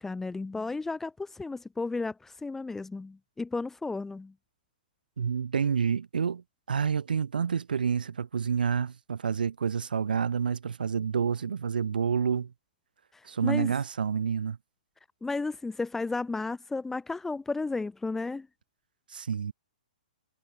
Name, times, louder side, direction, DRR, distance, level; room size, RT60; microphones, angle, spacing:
voice 1, 0.0-4.3 13.1-13.7 15.2-18.5, left 3 dB, 5° left, 3.5 m, -33 dB
voice 2, 5.2-6.4 6.7-12.5 13.2-14.6 19.1-19.5, right 6 dB, 85° right, 1.5 m, -28 dB
hypercardioid pair, 135°, 5 cm